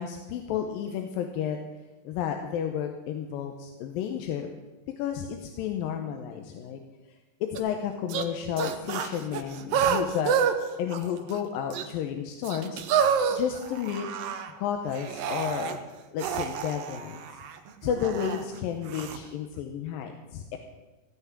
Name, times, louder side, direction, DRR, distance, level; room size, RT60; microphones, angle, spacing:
voice 1, 0.0-1.6 2.1-4.5 5.0-6.8 7.4-10.3 10.8-12.8 13.3-14.1 14.6-15.8 16.1-17.2 17.8-20.6, left 8 dB, 85° left, 5 dB, 2.6 m, -32 dB
sound 1, 7.6-7.7 8.1-8.3 8.6-10.5 10.9-11.4 11.7-11.8 12.4-14.5 14.9-15.8 16.2-18.4 18.9-19.2, right 7 dB, 80° right, 1.4 m, -29 dB
16.5 x 5.9 x 9.6 m, 1.2 s
omnidirectional pair, 4.1 m